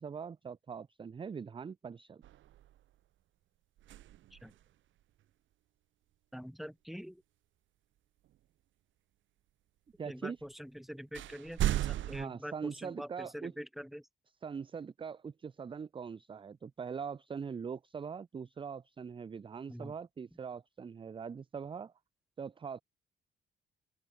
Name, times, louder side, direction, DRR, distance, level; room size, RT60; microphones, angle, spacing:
voice 1, 0.0-2.2 10.0-10.4 12.1-13.5 14.4-21.9 22.4-22.8, right 6 dB, 25° right, 0.5 m, -42 dB
sound 1, 2.2-3.0 3.8-4.7 8.2-8.3 10.4-10.5 11.1-12.3, right 13 dB, 75° right, 0.9 m, -36 dB
voice 2, 6.3-7.2 10.1-14.1 19.7-19.9, equal, ahead, 3.7 m, -45 dB
cardioid pair, 90°, 20 cm